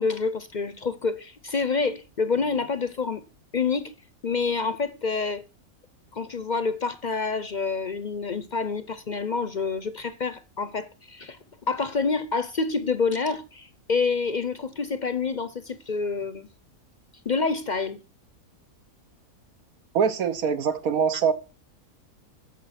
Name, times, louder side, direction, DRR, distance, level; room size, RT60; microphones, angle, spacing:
voice 1, 0.0-3.2 3.5-3.9 4.2-5.4 6.1-11.4 11.7-16.5 17.3-18.0, left 4 dB, 45° left, 0.6 m, -27 dB
voice 2, 19.9-21.3, right 6 dB, 80° right, 1.5 m, -23 dB
11.0 x 7.5 x 5.9 m
omnidirectional pair, 1.5 m